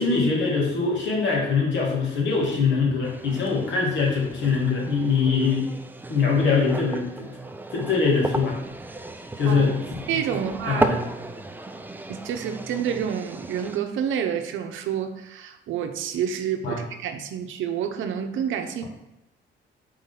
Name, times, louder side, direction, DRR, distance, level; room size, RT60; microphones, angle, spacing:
voice 1, 0.0-5.7 6.1-7.3 7.7-8.5 9.4-9.8 10.7-11.0 16.6-16.8, left 4 dB, 65° left, -3 dB, 2.0 m, -23 dB
sound 1, 3.0-13.8, right 2 dB, 10° right, 0.4 m, -34 dB
voice 2, 9.5-9.8 10.1-10.9 11.3-11.4 12.1-18.8, right 8 dB, 80° right, 6 dB, 0.7 m, -29 dB
4.5 x 3.9 x 5.6 m, 0.88 s
cardioid pair, 90°, 20 cm